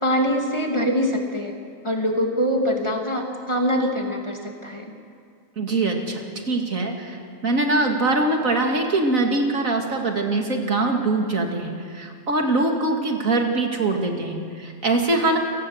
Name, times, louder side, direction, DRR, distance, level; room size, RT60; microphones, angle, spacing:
voice 1, 0.0-1.6 1.8-4.9, equal, 20° left, 1 dB, 2.6 m, -23 dB
voice 2, 5.6-7.2 7.4-15.4, right 2 dB, 70° right, 2 dB, 2.8 m, -23 dB
29.0 x 18.0 x 8.0 m, 2.2 s
omnidirectional pair, 1.5 m